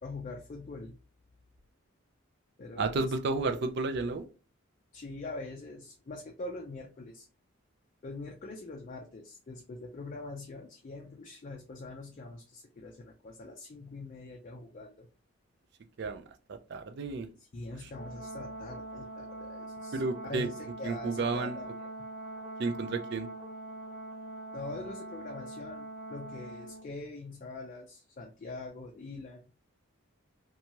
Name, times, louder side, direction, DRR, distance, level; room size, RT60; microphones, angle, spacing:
voice 1, 0.0-1.0 2.6-3.1 4.9-7.3 8.0-15.1 17.4-22.1 24.5-29.4, left 2 dB, 40° left, 0.4 m, -43 dB
voice 2, 2.8-4.2 16.0-16.2 16.5-17.3 19.9-20.5 20.8-21.6 22.6-23.3, right 3 dB, 55° right, 0.4 m, -32 dB
Brass instrument, 17.9-26.9, right 1 dB, 5° right, 0.6 m, -43 dB
2.7 x 2.3 x 2.9 m
head